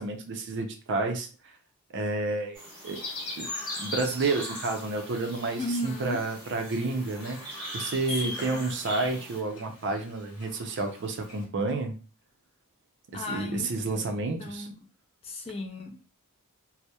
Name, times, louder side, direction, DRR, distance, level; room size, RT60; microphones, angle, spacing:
voice 1, 0.0-1.5 1.9-3.0 3.4-3.5 3.8-11.9 13.1-14.7, right 3 dB, 55° right, 5 dB, 0.5 m, -30 dB
sound 1, 2.5-9.4, equal, 5° left, 1.0 m, -40 dB
Chirp tweet, 2.9-11.4, left 2 dB, 70° left, 1.1 m, -43 dB
voice 2, 5.6-6.2 8.1-8.6 13.1-13.7 14.4-14.7 15.2-16.0, left 1 dB, 25° left, 2 dB, 0.4 m, -35 dB
2.7 x 2.0 x 2.2 m, 0.36 s
head